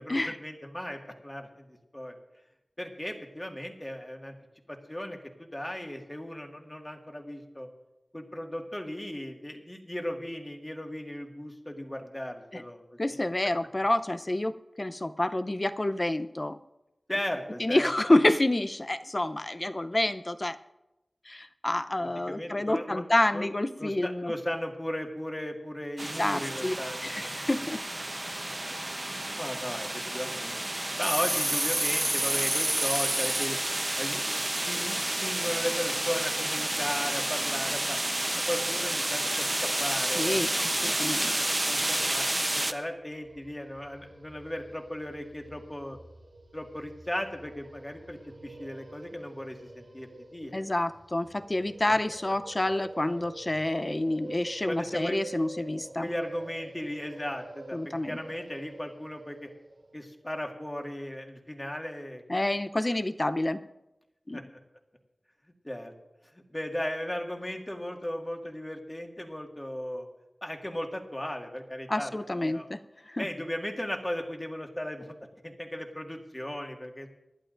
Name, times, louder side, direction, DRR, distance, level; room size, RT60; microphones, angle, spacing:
voice 1, 0.0-2.2 2.8-4.3 4.7-7.7 8.1-13.2 17.1-17.9 22.0-23.0 23.3-23.5 23.8-27.3 28.5-28.6 29.3-30.6 31.0-33.6 34.0-38.0 38.5-40.7 41.7-42.3 42.5-46.0 46.5-50.5 54.7-55.2 56.0-59.5 59.9-62.5 64.3-64.4 65.6-65.9 66.5-70.1 70.4-72.1 72.4-72.7 73.2-75.1 75.4-77.1, left 1 dB, 20° left, 2 dB, 1.9 m, -36 dB
voice 2, 13.0-16.6 17.6-20.6 21.3-24.3 26.2-26.7 27.0-27.8 40.2-41.3 50.5-56.1 57.7-58.2 62.3-63.6 64.3-64.4 71.9-72.8 73.1-73.3, left 1 dB, 35° left, 10 dB, 0.6 m, -28 dB
sound 1, 26.0-42.7, right 1 dB, 30° right, 0.7 m, -30 dB
sound 2, 43.0-60.0, right 2 dB, 85° right, 2.1 m, -48 dB
26.0 x 11.5 x 2.6 m, 0.95 s
wide cardioid pair, 50°, 0 cm